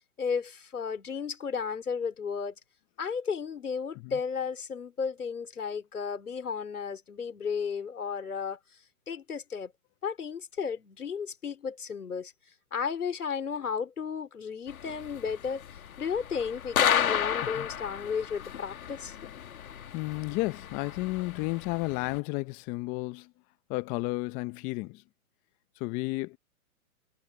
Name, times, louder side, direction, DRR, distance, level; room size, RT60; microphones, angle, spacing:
voice 1, 0.2-2.6 3.0-8.6 9.1-9.7 10.0-12.3 12.7-15.6 16.0-19.2, left 6 dB, 85° left, 4.4 m, -33 dB
sound 1, 14.7-22.2, left 9 dB, 70° left, 2.2 m, -33 dB
voice 2, 19.9-23.3 23.7-25.0 25.8-26.4, left 22 dB, 20° left, 0.6 m, -32 dB
hypercardioid pair, 135°, 44 cm